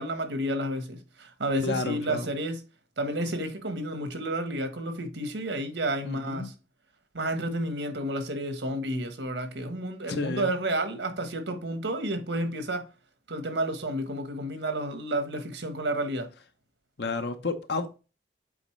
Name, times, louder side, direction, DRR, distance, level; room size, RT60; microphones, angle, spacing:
voice 1, 0.0-2.6 3.0-6.5 7.1-12.9 13.3-16.3, right 1 dB, 80° right, 1.3 m, -31 dB
voice 2, 1.6-2.3 6.0-6.5 10.1-10.5 17.0-18.0, left 3 dB, 65° left, 0.9 m, -31 dB
7.8 x 4.3 x 3.2 m
head